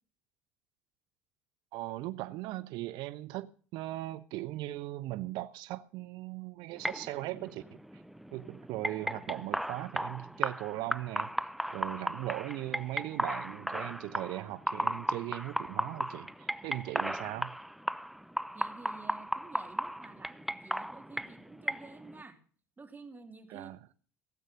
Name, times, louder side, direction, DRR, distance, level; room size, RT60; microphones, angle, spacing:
voice 1, 1.7-7.6 8.3-11.3 11.7-17.6 23.5-23.8, right 17 dB, 65° right, 0.7 m, -39 dB
sound 1, 6.8-22.2, equal, ahead, 0.6 m, -36 dB
voice 2, 18.5-22.4 22.8-23.7, right 4 dB, 20° right, 2.9 m, -51 dB
16.5 x 8.1 x 6.6 m
supercardioid pair, 80°, 8 cm